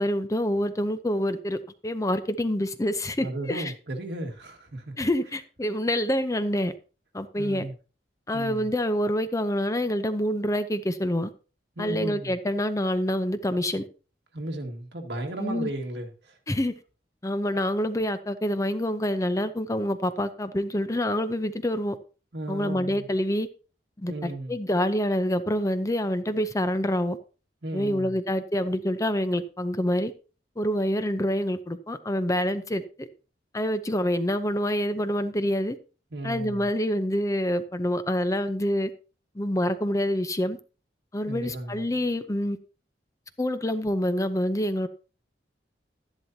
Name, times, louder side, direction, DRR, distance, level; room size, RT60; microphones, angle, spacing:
voice 1, 0.0-3.7 5.0-6.7 7.1-7.7 8.3-11.3 11.8-13.9 15.4-15.7 16.5-16.7 17.2-22.0 22.5-23.5 24.0-27.2 27.7-30.1 30.6-33.1 33.5-35.8 36.2-38.9 39.4-40.6 41.1-42.6 43.4-44.9, equal, 20° left, 0.6 m, -27 dB
voice 2, 3.2-4.9 7.4-7.7 8.3-8.7 11.8-12.3 14.3-16.4 22.3-23.1 24.1-24.6 27.6-28.2 36.1-36.7 41.3-41.8, right 1 dB, 70° right, 1.9 m, -35 dB
12.5 x 11.0 x 2.8 m
head